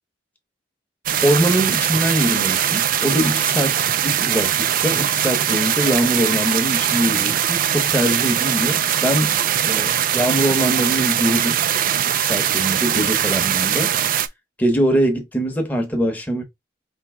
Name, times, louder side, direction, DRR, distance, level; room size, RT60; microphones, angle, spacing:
sound 1, 1.1-14.3, right 10 dB, 50° right, 0.4 m, -21 dB
voice 1, 1.2-3.8 4.0-9.4 9.6-11.6 12.1-13.9 14.6-16.4, equal, 10° left, 0.9 m, -22 dB
3.5 x 2.8 x 4.3 m
head